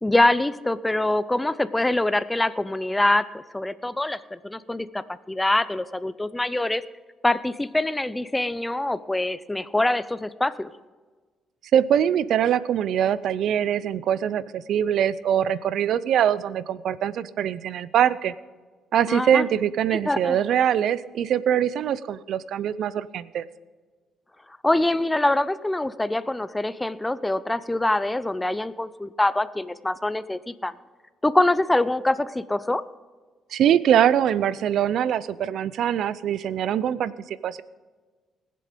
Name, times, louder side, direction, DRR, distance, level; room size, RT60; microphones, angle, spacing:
voice 1, 0.0-6.8 7.2-10.7 19.1-19.4 20.0-20.4 24.6-30.7 31.2-32.8, left 1 dB, 10° left, 15 dB, 0.6 m, -24 dB
voice 2, 11.7-18.3 18.9-23.4 33.5-37.6, right 9 dB, 75° right, 17 dB, 0.5 m, -23 dB
20.0 x 7.7 x 5.2 m, 1.4 s
cardioid pair, 90°, 0 cm